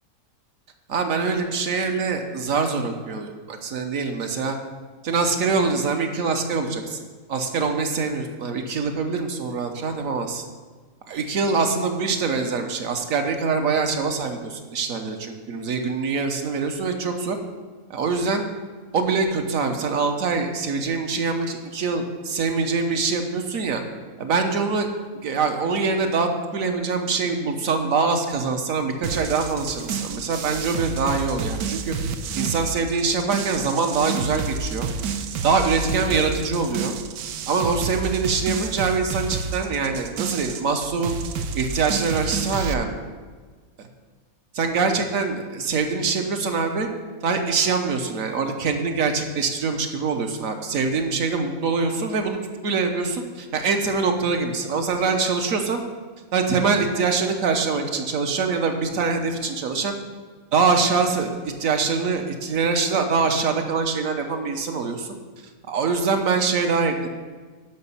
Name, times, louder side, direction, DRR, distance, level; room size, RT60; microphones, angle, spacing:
voice 1, 0.9-4.6 5.0-7.0 7.3-10.4 11.1-17.4 17.9-18.5 18.9-23.8 24.2-24.9 25.2-31.9 32.3-34.9 35.4-36.9 37.5-41.2 41.5-43.0 44.5-46.9 47.2-55.8 56.3-60.0 60.5-65.1 65.7-67.1, right 4 dB, 70° right, 5 dB, 1.4 m, -24 dB
sound 1, 29.0-42.7, right 5 dB, 85° right, 1.2 m, -30 dB
11.0 x 5.7 x 5.6 m, 1.4 s
omnidirectional pair, 1.5 m